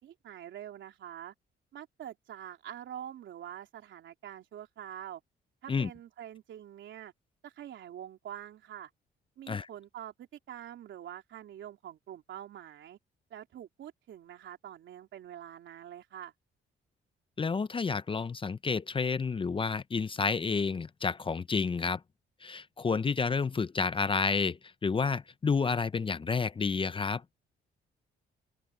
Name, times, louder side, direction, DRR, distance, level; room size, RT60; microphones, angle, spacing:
voice 1, 0.0-1.3 1.7-5.2 5.6-7.1 7.4-8.9 9.4-13.0 13.3-16.3, right 10 dB, 70° right, 3.5 m, -45 dB
voice 2, 17.4-22.0 22.4-27.2, left 5 dB, 25° left, 0.6 m, -30 dB
cardioid pair, 90°, 20 cm